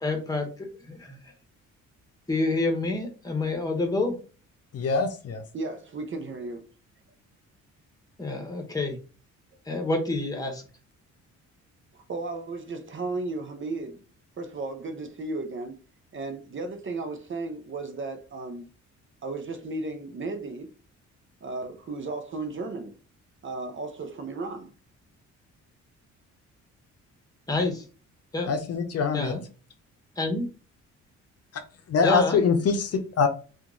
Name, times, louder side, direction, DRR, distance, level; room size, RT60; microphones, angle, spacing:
voice 1, 0.0-1.2 2.3-4.2 8.2-9.0 9.7-10.6 27.5-27.8 28.3-28.5 29.1-29.4 30.2-30.5 32.0-32.4, left 2 dB, 10° left, 1.3 m, -28 dB
voice 2, 4.7-5.4 28.5-29.3 31.9-33.3, left 5 dB, 55° left, 0.7 m, -24 dB
voice 3, 5.5-6.7 11.9-14.0 14.4-15.8 16.1-18.6 19.2-20.7 21.4-23.0 23.4-24.7, right 3 dB, 40° right, 0.7 m, -34 dB
2.9 x 2.5 x 3.8 m
cardioid pair, 90°, 30 cm